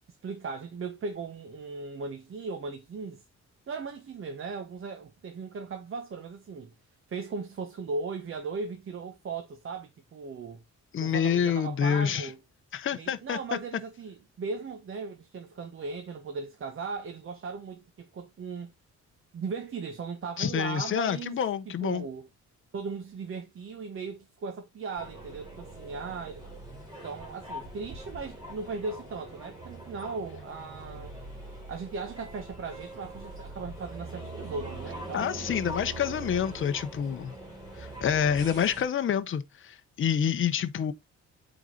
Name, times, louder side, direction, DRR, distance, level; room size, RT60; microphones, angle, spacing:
voice 1, 0.2-3.2 3.7-6.7 7.1-10.6 11.0-12.4 12.9-18.7 19.3-21.4 21.7-22.3 22.7-26.4 27.0-31.1 31.7-35.5, right 4 dB, 45° right, 1.1 m, -37 dB
voice 2, 10.9-12.3 12.7-13.4 20.4-22.1 35.1-37.3 37.8-40.9, left 8 dB, 45° left, 0.8 m, -28 dB
sound 1, 25.0-38.8, right 2 dB, 15° right, 4.1 m, -42 dB
8.1 x 4.0 x 3.8 m
cardioid pair, 145°, 29 cm